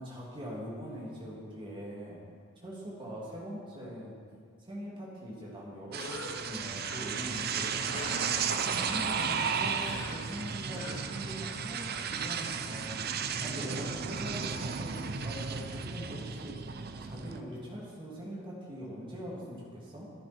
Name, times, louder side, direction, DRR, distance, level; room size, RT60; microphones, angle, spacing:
voice 1, 0.0-2.2 2.6-4.2 4.6-13.1 13.4-20.1, equal, 25° right, -5 dB, 2.7 m, -42 dB
Cough, 5.9-11.7, left 2 dB, 75° left, 1.7 m, -46 dB
sound 1, 5.9-17.4, right 6 dB, 45° right, 0.6 m, -34 dB
13.5 x 11.0 x 4.4 m, 2.1 s
head